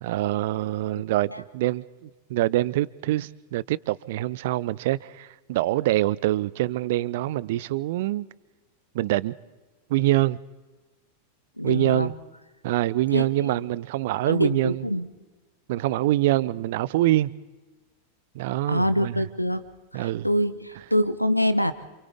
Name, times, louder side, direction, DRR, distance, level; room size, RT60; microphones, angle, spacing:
voice 1, 0.0-8.3 8.9-9.3 9.9-10.4 11.6-12.1 12.6-14.8 15.7-17.3 18.3-19.2 19.9-20.3, right 16 dB, 50° right, 0.6 m, -25 dB
voice 2, 11.6-12.1 13.1-13.5 14.3-15.1 18.7-19.6 19.9-21.7, equal, 90° left, 1.0 m, -25 dB
28.0 x 27.5 x 3.6 m
figure-of-eight pair, 90°, 0 cm